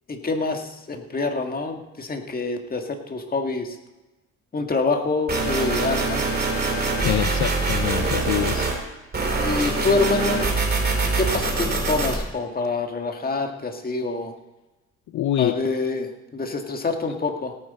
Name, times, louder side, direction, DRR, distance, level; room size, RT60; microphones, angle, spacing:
voice 1, 0.1-3.8 4.5-6.2 9.4-10.5 11.2-14.3 15.4-17.5, left 3 dB, 30° left, 4 dB, 1.7 m, -26 dB
sound 1, 5.3-8.8 9.1-12.1, right 3 dB, 30° right, 2.9 m, -24 dB
voice 2, 7.0-8.7 15.1-15.5, left 12 dB, 65° left, 10 dB, 0.6 m, -25 dB
17.5 x 9.3 x 4.2 m, 1.1 s
cardioid pair, 90°, 30 cm